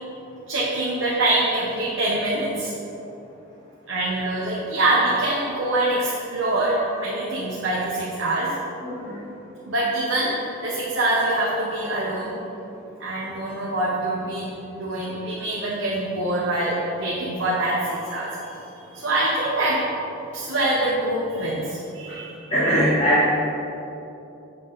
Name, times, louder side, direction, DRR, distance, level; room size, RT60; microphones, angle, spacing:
voice 1, 0.5-2.7 3.9-8.5 9.7-12.3 13.0-18.4 18.7-19.8 20.3-22.4, right 2 dB, 60° right, -6 dB, 1.0 m, -24 dB
voice 2, 8.8-9.3 22.1-22.2 22.5-23.3, equal, 30° left, -11 dB, 1.3 m, -21 dB
7.5 x 5.6 x 4.0 m, 3.0 s
head